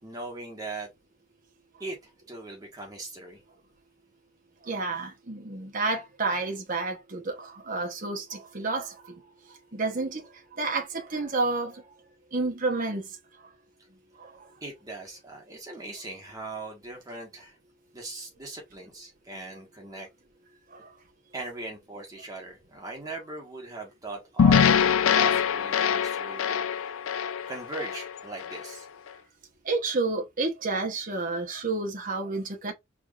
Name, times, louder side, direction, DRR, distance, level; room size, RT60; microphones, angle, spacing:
voice 1, 0.0-0.9 1.8-3.4 14.6-17.6 17.9-20.1 21.3-26.6 27.5-28.9, right 3 dB, 20° right, 1.6 m, -39 dB
voice 2, 4.6-9.2 9.5-11.9 12.3-13.2 14.2-14.5 20.7-20.9 29.6-32.7, right 3 dB, 40° right, 1.1 m, -30 dB
sound 1, 24.4-28.7, left 7 dB, 85° left, 0.4 m, -23 dB
4.5 x 3.5 x 2.5 m
head